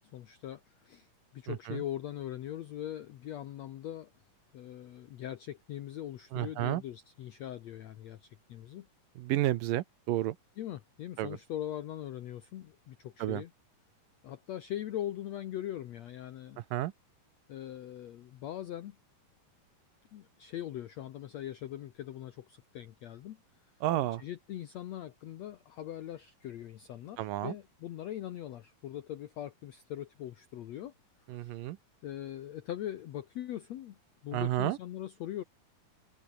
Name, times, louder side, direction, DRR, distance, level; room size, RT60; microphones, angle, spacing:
voice 1, 0.1-4.1 4.5-8.9 10.6-13.5 14.2-16.6 17.5-19.0 20.1-23.4 24.2-30.9 31.3-31.6 32.0-34.0 34.2-35.4, left 12 dB, 75° left, 1.6 m, -41 dB
voice 2, 1.5-1.8 6.3-6.8 9.2-10.4 11.2-11.4 13.2-13.4 16.6-16.9 23.8-24.2 27.2-27.6 31.3-31.8 34.3-34.8, right 14 dB, 75° right, 2.4 m, -31 dB
omnidirectional pair, 4.4 m